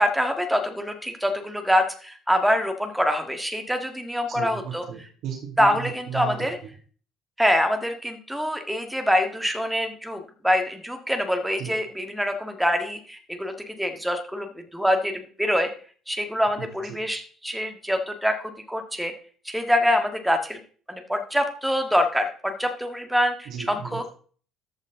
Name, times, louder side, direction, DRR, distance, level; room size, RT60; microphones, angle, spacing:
voice 1, 0.0-4.8 5.6-6.6 7.4-15.7 16.1-19.1 19.5-20.6 20.9-24.0, equal, 5° right, 5 dB, 1.7 m, -25 dB
voice 2, 4.3-6.5 11.6-11.7 16.6-17.0 23.5-24.1, right 8 dB, 65° right, -4 dB, 2.4 m, -35 dB
13.5 x 5.4 x 3.9 m, 0.43 s
hypercardioid pair, 55°, 0 cm